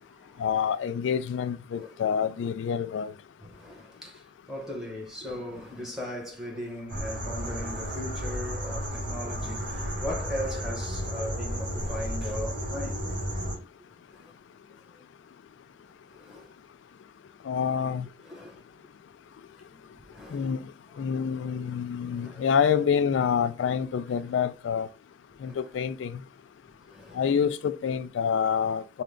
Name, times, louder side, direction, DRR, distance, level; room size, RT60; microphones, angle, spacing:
voice 1, 0.4-3.1 17.4-18.1 20.3-20.7 21.0-24.9 25.4-26.2 27.1-29.0, left 7 dB, 75° left, 0.3 m, -27 dB
voice 2, 3.4-13.0 14.1-14.3 14.9-15.0 16.1-16.5 18.2-18.6 19.8-20.5 22.1-22.4 25.4-25.6 26.9-27.2, left 1 dB, ahead, 1.2 m, -38 dB
sound 1, 6.9-13.6, equal, 45° right, 2.5 m, -33 dB
4.8 x 2.2 x 3.7 m
head